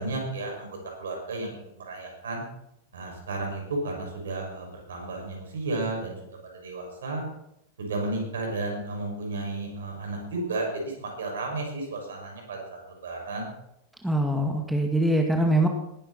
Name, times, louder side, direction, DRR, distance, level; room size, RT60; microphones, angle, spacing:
voice 1, 0.0-2.4 2.9-6.1 6.5-7.2 7.8-13.5, right 2 dB, 65° right, 1 dB, 6.5 m, -33 dB
voice 2, 14.0-15.7, right 1 dB, 5° right, 2 dB, 2.0 m, -23 dB
19.0 x 11.5 x 4.4 m, 0.79 s
figure-of-eight pair, 90°, 0 cm